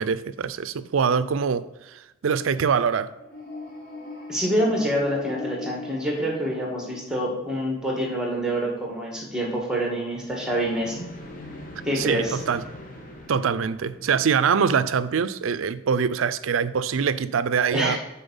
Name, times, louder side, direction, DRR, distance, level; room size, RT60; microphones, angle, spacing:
voice 1, 0.0-3.1 12.0-12.6 13.3-18.0, right 6 dB, 90° right, 0.4 m, -24 dB
sound 1, 3.1-7.5 10.1-15.1, left 2 dB, 45° left, 1.2 m, -41 dB
voice 2, 4.3-11.1 11.8-12.4 17.7-18.0, equal, 5° right, 1.5 m, -26 dB
7.0 x 4.4 x 5.5 m
head